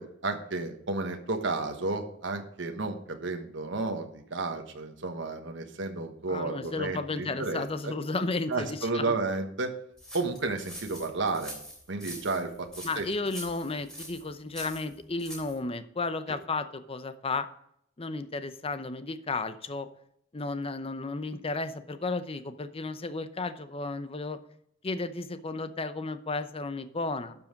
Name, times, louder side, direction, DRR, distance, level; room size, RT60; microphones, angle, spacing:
voice 1, 0.0-7.9 8.5-9.7 10.1-11.6 11.9-13.1 13.7-13.8 16.3-16.4, right 3 dB, 65° right, 5 dB, 1.3 m, -32 dB
voice 2, 6.3-9.1 12.8-17.5 18.0-19.9 20.3-24.4 24.8-27.4, left 3 dB, 30° left, 11 dB, 0.7 m, -33 dB
sound 1, 10.0-15.6, equal, 5° left, 3.3 m, -44 dB
12.0 x 5.5 x 5.2 m, 0.72 s
head